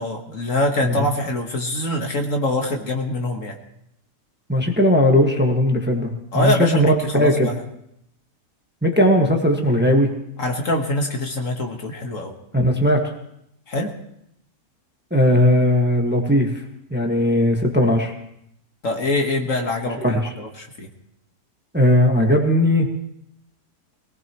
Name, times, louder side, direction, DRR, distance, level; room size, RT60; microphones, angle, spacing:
voice 1, 0.0-3.5 6.3-7.6 10.4-12.3 13.7-13.9 18.8-20.9, left 1 dB, 50° left, 3 dB, 1.8 m, -24 dB
voice 2, 4.5-7.5 8.8-10.1 12.5-13.0 15.1-16.5 16.9-18.1 20.0-20.3 21.7-22.9, left 1 dB, 5° right, 2 dB, 1.3 m, -18 dB
23.0 x 18.0 x 3.0 m, 0.75 s
omnidirectional pair, 1.7 m